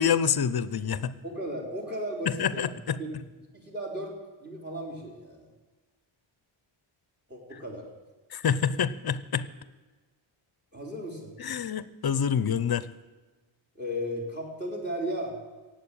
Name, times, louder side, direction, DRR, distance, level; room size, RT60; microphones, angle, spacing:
voice 1, 0.0-1.1 2.4-3.0 8.3-9.4 11.4-12.9, left 7 dB, 50° left, 16 dB, 0.7 m, -27 dB
voice 2, 1.2-3.1 3.5-5.5 7.3-7.9 10.7-11.4 13.7-15.4, equal, 20° right, 1 dB, 3.9 m, -35 dB
17.0 x 7.9 x 8.9 m, 1.3 s
wide cardioid pair, 150°, 49 cm